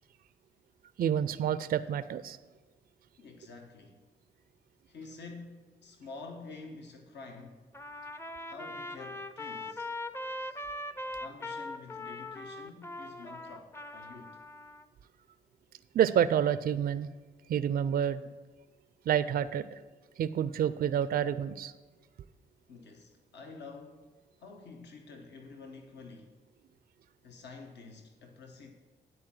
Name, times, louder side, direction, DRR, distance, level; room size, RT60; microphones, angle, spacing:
voice 1, 1.0-2.4 15.9-17.1 17.5-18.2 19.1-19.7 20.2-21.7, right 9 dB, 55° right, 14 dB, 0.4 m, -28 dB
voice 2, 3.2-4.0 4.9-7.6 8.5-9.9 10.3-10.6 11.2-14.4 22.7-26.4 27.2-28.7, left 4 dB, 65° left, 3 dB, 1.1 m, -49 dB
Trumpet, 7.7-14.8, left 1 dB, 15° left, 0.6 m, -41 dB
9.9 x 4.3 x 7.4 m, 1.3 s
supercardioid pair, 55°, 19 cm